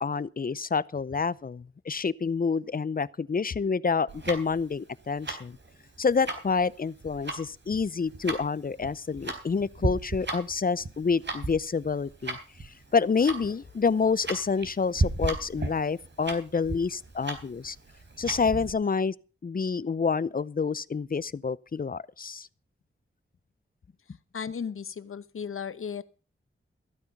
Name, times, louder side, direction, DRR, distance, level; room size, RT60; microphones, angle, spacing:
voice 1, 0.0-5.6 6.0-17.8 18.2-19.1 19.4-22.5, left 5 dB, 45° left, 0.6 m, -28 dB
Tick-tock, 4.1-18.7, right 2 dB, 60° right, 4.0 m, -35 dB
voice 2, 24.3-26.0, left 6 dB, 80° left, 0.9 m, -35 dB
15.0 x 9.3 x 5.9 m
cardioid pair, 50°, 21 cm